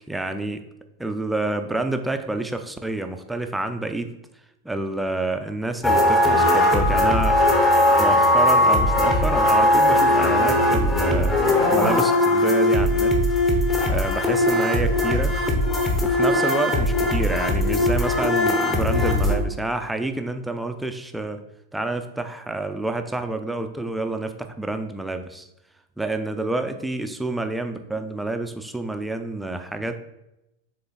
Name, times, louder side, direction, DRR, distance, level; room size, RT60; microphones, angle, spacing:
voice 1, 0.1-0.6 1.0-4.1 4.6-7.4 8.0-11.4 11.7-13.2 13.9-15.4 16.0-21.4 21.7-25.5 26.0-30.0, right 2 dB, 5° right, 7 dB, 0.5 m, -28 dB
sound 1, 5.8-19.4, left 1 dB, 20° left, 1.0 m, -19 dB
6.7 x 3.8 x 4.0 m, 0.89 s
figure-of-eight pair, 90°, 0 cm